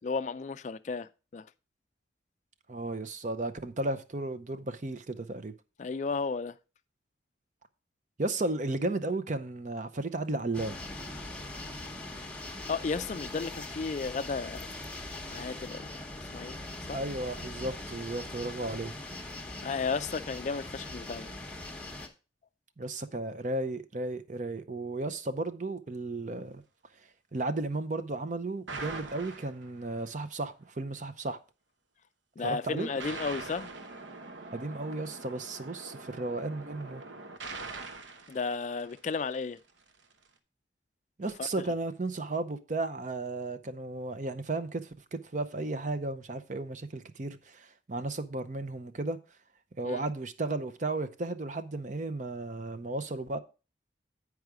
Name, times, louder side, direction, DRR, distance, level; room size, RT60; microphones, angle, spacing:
voice 1, 0.0-1.5 5.8-6.6 12.7-14.7 15.3-15.9 16.3-16.6 16.9-17.0 19.6-21.3 32.4-33.7 38.3-39.6 41.4-41.5 49.8-50.0, left 4 dB, 40° left, 0.3 m, -33 dB
voice 2, 2.7-5.5 8.2-10.8 16.9-18.9 22.8-26.6 27.0-31.4 32.4-32.9 34.5-37.0 41.2-49.2 49.8-53.4, right 2 dB, 40° right, 0.6 m, -34 dB
sound 1, 10.5-22.1, left 2 dB, 5° left, 0.9 m, -41 dB
sound 2, 28.7-30.1 32.8-39.3, right 3 dB, 80° right, 1.0 m, -43 dB
9.4 x 4.8 x 4.8 m
head